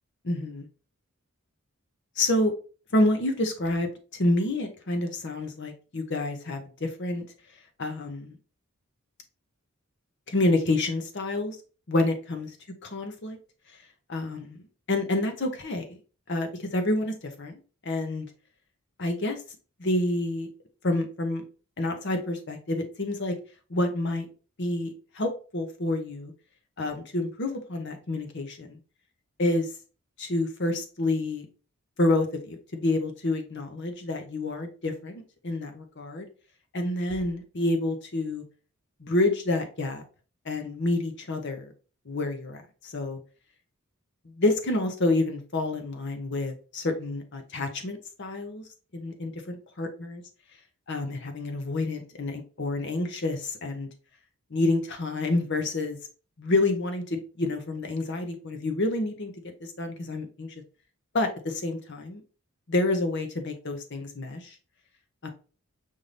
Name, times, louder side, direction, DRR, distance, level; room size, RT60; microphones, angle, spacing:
voice 1, 0.2-0.7 2.2-2.5 2.9-3.9 4.2-7.2 7.8-8.3 10.3-11.6 11.9-12.5 12.8-13.4 14.1-14.6 14.9-15.8 16.3-18.3 19.0-19.4 19.8-20.5 20.8-21.4 21.8-23.3 23.7-24.3 24.6-26.3 26.8-28.8 29.4-29.7 30.2-31.5 32.0-36.3 36.7-38.4 39.0-40.0 40.5-41.7 42.1-43.2 44.4-48.6 48.9-49.3 49.8-49.9 50.1-50.2 50.9-53.9 54.5-56.0 56.4-59.3 59.6-60.5 61.1-62.2 62.7-64.5 65.2-65.3, left 2 dB, 55° left, 0.9 m, -28 dB
5.5 x 2.7 x 3.3 m
head